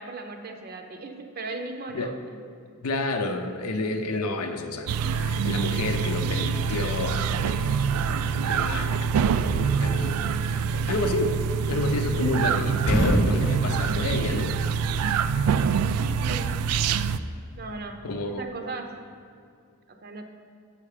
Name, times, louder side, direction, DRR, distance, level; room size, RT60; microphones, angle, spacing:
voice 1, 0.0-2.1 16.2-16.6 17.6-18.0 18.3-18.9 19.9-20.3, right 3 dB, 45° right, 4 dB, 0.6 m, -37 dB
voice 2, 2.8-11.4 11.7-14.6 15.6-15.8 18.0-18.4, left 2 dB, 85° left, 6 dB, 0.7 m, -30 dB
sound 1, 4.9-17.2, right 6 dB, 80° right, 0.3 m, -25 dB
sound 2, 12.1-12.5 12.8-14.9, equal, 45° left, 0.9 m, -27 dB
sound 3, 12.2-18.1, left 1 dB, 15° left, 0.4 m, -43 dB
8.3 x 5.7 x 4.9 m, 2.3 s
head